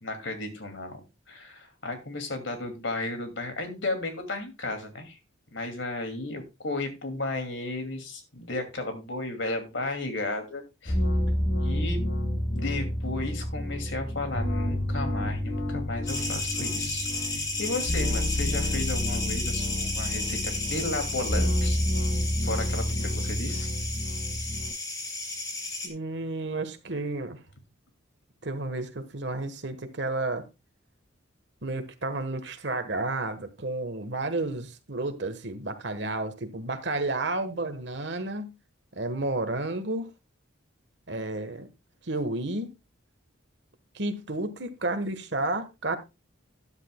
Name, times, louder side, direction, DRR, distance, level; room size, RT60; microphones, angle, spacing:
voice 1, 0.0-5.2 5.5-11.0 11.6-12.0 12.5-17.1 17.3-21.8 22.4-23.7, left 2 dB, 70° left, 2.5 m, -34 dB
sound 1, 10.8-24.7, left 1 dB, 85° left, 6.1 m, -29 dB
sound 2, 16.1-25.9, left 2 dB, 20° left, 2.2 m, -33 dB
voice 2, 23.0-23.4 25.8-27.4 28.4-30.4 31.6-38.5 38.9-40.1 41.1-41.7 42.1-42.7 43.9-46.0, right 2 dB, 60° right, 1.4 m, -31 dB
13.0 x 10.0 x 2.3 m
head